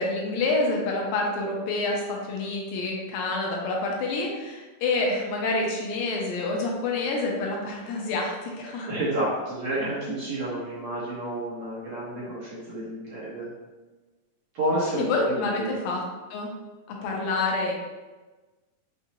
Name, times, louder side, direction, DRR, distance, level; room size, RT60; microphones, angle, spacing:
voice 1, 0.0-8.9 14.9-16.0 16.3-16.5 16.9-17.7, left 2 dB, 85° left, -1 dB, 2.4 m, -27 dB
voice 2, 8.8-13.5 14.5-15.7, right 1 dB, 65° right, -8 dB, 1.8 m, -30 dB
6.0 x 2.7 x 2.7 m, 1.2 s
omnidirectional pair, 4.0 m